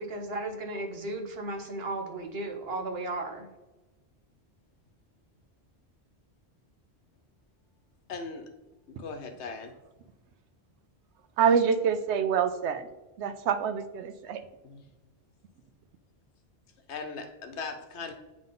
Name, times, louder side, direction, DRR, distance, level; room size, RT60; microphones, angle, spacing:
voice 1, 0.0-3.5, right 2 dB, 65° right, 2 dB, 1.2 m, -35 dB
voice 2, 8.1-8.5 8.9-9.7 14.6-14.8 16.9-18.1, left 4 dB, 80° left, 6 dB, 1.1 m, -39 dB
voice 3, 11.4-12.9 13.2-14.4, right 7 dB, 85° right, 10 dB, 0.9 m, -26 dB
9.2 x 3.7 x 3.8 m, 1.1 s
omnidirectional pair, 1.1 m